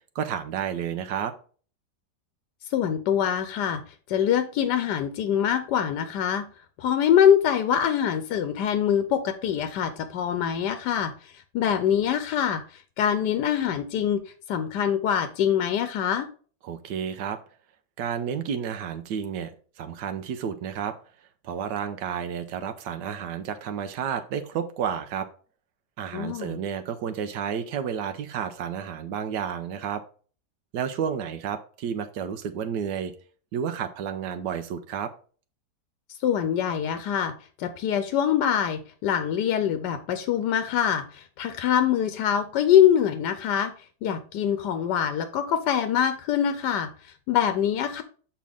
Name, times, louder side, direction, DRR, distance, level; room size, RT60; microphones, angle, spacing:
voice 1, 0.1-1.3 16.6-17.4 18.0-19.5 19.8-21.0 21.4-25.3 26.0-30.0 30.7-33.1 33.5-35.1, right 8 dB, 90° right, 8 dB, 1.3 m, -31 dB
voice 2, 2.7-6.5 6.8-14.2 14.5-16.3 26.1-26.6 36.2-37.3 37.6-43.7 44.0-48.0, left 9 dB, 90° left, 10 dB, 1.2 m, -24 dB
7.0 x 5.0 x 3.5 m, 0.40 s
omnidirectional pair, 1.8 m